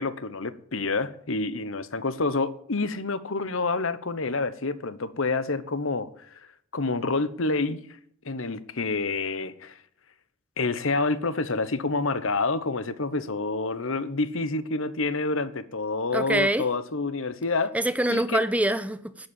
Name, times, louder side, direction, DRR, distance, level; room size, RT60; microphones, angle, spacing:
voice 1, 0.0-6.4 6.7-7.8 8.2-9.8 10.6-17.7 18.1-18.4, left 3 dB, 65° left, 1.0 m, -28 dB
voice 2, 16.1-16.7 17.7-19.3, right 1 dB, 5° right, 0.7 m, -25 dB
11.5 x 7.9 x 8.5 m
head